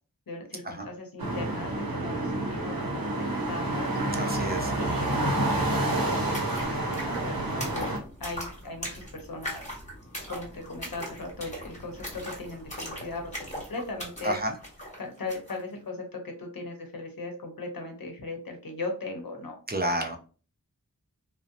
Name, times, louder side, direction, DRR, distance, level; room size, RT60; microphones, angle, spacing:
voice 1, 0.3-4.0 4.8-7.9 8.2-9.6 10.3-13.3 13.7-14.4 15.0-19.6, left 2 dB, 75° left, 3 dB, 0.7 m, -38 dB
sound 1, 1.2-8.0, right 1 dB, 80° right, 0.7 m, -28 dB
voice 2, 4.2-4.7 14.2-14.5 19.7-20.2, right 1 dB, 30° right, 3 dB, 0.4 m, -30 dB
sound 2, 5.1-5.2 5.4-15.6, equal, 20° left, 1.2 m, -40 dB
2.6 x 2.0 x 2.5 m, 0.38 s
wide cardioid pair, 40°, 35 cm